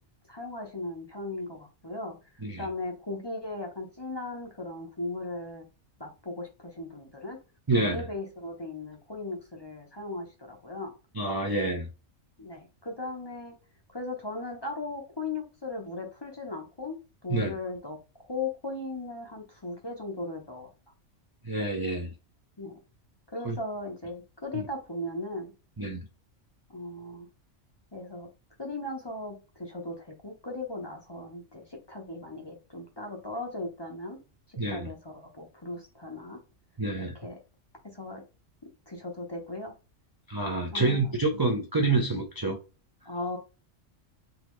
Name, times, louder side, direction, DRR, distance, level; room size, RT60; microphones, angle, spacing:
voice 1, 0.3-2.2 2.6-5.6 6.0-7.4 7.8-10.9 12.4-13.6 13.9-18.0 18.2-20.7 22.6-22.7 23.3-25.5 26.7-27.3 27.9-28.3 28.6-34.2 34.7-36.4 37.0-37.4 37.8-38.2 38.9-39.7 40.7-41.2 43.1-43.4, left 2 dB, 25° left, 0.7 m, -37 dB
voice 2, 7.7-8.0 11.1-11.9 17.3-17.5 21.4-22.1 23.4-23.6 24.5-24.6 25.8-26.0 34.6-34.9 36.8-37.1 40.3-42.6, right 2 dB, 30° right, 0.4 m, -27 dB
3.9 x 2.9 x 3.1 m
omnidirectional pair, 1.3 m